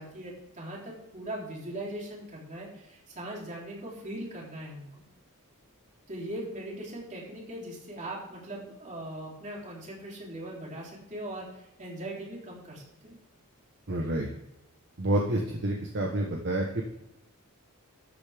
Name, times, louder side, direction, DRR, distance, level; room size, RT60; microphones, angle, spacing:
voice 1, 0.0-4.9 6.1-13.2, right 1 dB, 35° right, -3 dB, 3.4 m, -40 dB
voice 2, 13.9-14.3 15.0-16.8, right 1 dB, 55° right, 0 dB, 1.2 m, -28 dB
13.0 x 8.3 x 3.5 m, 0.89 s
head